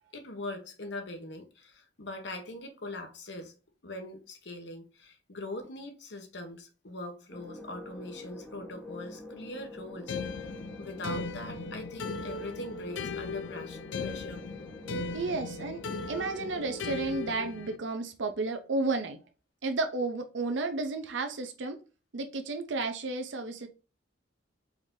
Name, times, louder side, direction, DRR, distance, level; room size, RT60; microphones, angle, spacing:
voice 1, 0.1-3.5 3.8-10.2 10.8-14.4, left 2 dB, 70° left, 1.0 m, -42 dB
sound 1, 7.3-17.0, left 1 dB, 5° left, 1.0 m, -46 dB
sound 2, 10.1-17.8, left 4 dB, 90° left, 0.5 m, -38 dB
voice 2, 15.1-15.8 16.1-19.2 19.6-21.8 22.1-23.7, right 3 dB, 80° right, 0.6 m, -32 dB
4.6 x 2.7 x 3.6 m
head